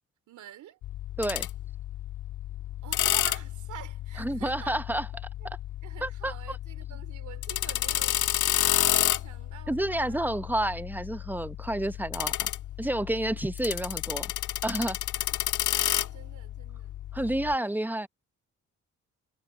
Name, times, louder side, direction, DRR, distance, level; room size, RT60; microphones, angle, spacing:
voice 1, 0.3-0.8 2.8-4.8 5.8-10.2 13.3-13.4 15.3-15.4 15.7-17.0 17.5-17.8, right 12 dB, 75° right, 3.2 m, -47 dB
sound 1, 0.8-17.5, left 13 dB, 85° left, 1.5 m, -31 dB
voice 2, 4.2-5.1 5.4-5.6 6.0-6.6 9.7-12.5 12.8-14.3 14.6-15.0 17.1-18.1, right 1 dB, 5° right, 0.7 m, -30 dB
cardioid pair, 90°, 30 cm